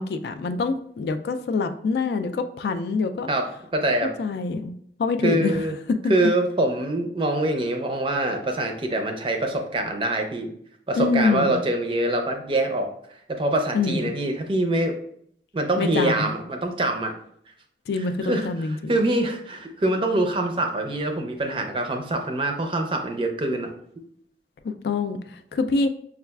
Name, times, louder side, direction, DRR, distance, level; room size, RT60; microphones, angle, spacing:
voice 1, 0.0-3.3 4.2-6.1 10.9-11.5 13.7-14.1 15.8-16.4 17.9-19.0 24.6-25.9, left 4 dB, 65° left, 8 dB, 0.3 m, -25 dB
voice 2, 3.3-4.1 5.2-5.8 6.1-10.5 10.9-12.9 13.3-15.0 15.5-17.1 18.3-18.5 18.9-23.7, right 1 dB, 30° right, 5 dB, 0.4 m, -24 dB
5.5 x 2.3 x 2.2 m, 0.67 s
head